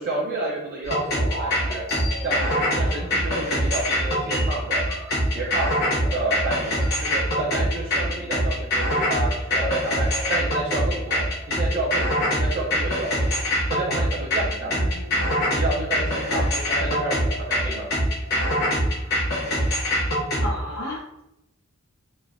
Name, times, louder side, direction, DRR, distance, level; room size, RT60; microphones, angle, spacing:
voice 1, 0.0-1.8 2.2-4.9 5.3-5.7 6.1-6.8 7.0-13.4 13.7-14.8 15.5-16.5 16.8-17.9, right 2 dB, 45° right, -4 dB, 0.5 m, -30 dB
sound 1, 0.8-20.5, equal, 50° left, 1.0 m, -24 dB
sound 2, 4.8-6.8 9.5-12.4 16.7-18.9, left 1 dB, 35° left, 0.4 m, -39 dB
voice 2, 14.7-15.5 15.9-17.0 20.4-21.2, left 1 dB, 80° left, -3 dB, 0.9 m, -35 dB
3.1 x 2.1 x 2.4 m, 0.89 s
head